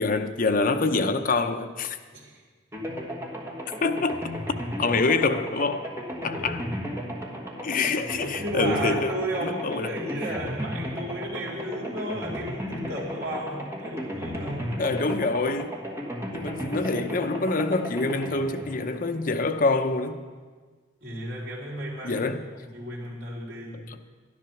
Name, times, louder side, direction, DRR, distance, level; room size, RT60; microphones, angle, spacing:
voice 1, 0.0-2.0 3.8-4.3 4.8-5.9 6.2-6.6 7.6-9.1 9.4-10.0 14.8-15.8 16.3-20.2 22.0-22.4 23.7-24.0, left 3 dB, 50° left, 0.7 m, -26 dB
voice 2, 2.1-2.4 6.3-6.7 7.7-7.8 8.4-14.9 21.0-23.8, right 1 dB, 65° right, 3.4 m, -34 dB
sound 1, 2.7-19.6, equal, 15° right, 1.5 m, -35 dB
12.0 x 11.0 x 5.9 m
head